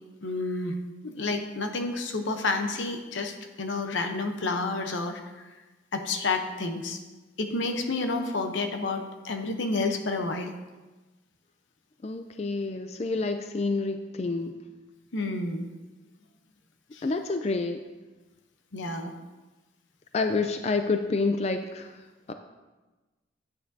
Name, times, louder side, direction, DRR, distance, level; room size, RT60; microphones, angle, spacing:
voice 1, 0.2-0.8 1.0-5.2 5.9-7.0 7.4-10.5 15.1-15.7 16.9-17.0 18.7-19.1, left 3 dB, 80° left, 6 dB, 0.8 m, -30 dB
voice 2, 12.0-14.5 17.0-17.8 20.1-22.0 22.3-22.4, left 3 dB, 35° left, 7 dB, 0.3 m, -28 dB
9.7 x 8.8 x 2.7 m, 1.2 s
head